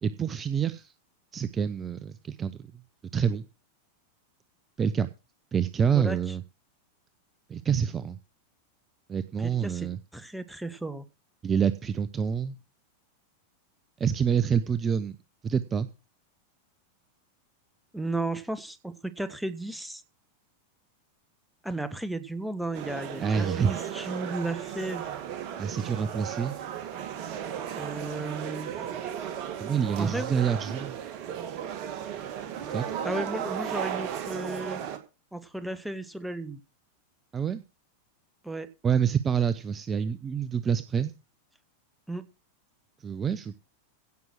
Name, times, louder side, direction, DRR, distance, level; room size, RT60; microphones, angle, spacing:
voice 1, 0.0-0.9 1.3-2.6 3.1-3.4 4.8-5.1 5.5-6.4 7.5-8.2 9.1-10.0 11.4-12.6 14.0-15.2 15.4-15.9 23.2-23.7 25.6-26.6 29.6-31.0 32.7-33.0 37.3-37.6 38.8-41.1 43.0-43.5, right 7 dB, 20° right, 15 dB, 0.7 m, -27 dB
voice 2, 9.4-11.1 17.9-20.0 21.6-25.0 27.7-28.9 30.0-30.3 33.0-34.8 35.3-36.6 38.4-38.7 42.1-42.2, right 2 dB, 5° right, 13 dB, 1.3 m, -34 dB
sound 1, 22.7-35.0, right 9 dB, 40° right, 2.1 m, -35 dB
16.5 x 6.2 x 6.2 m, 0.31 s
figure-of-eight pair, 90°, 0 cm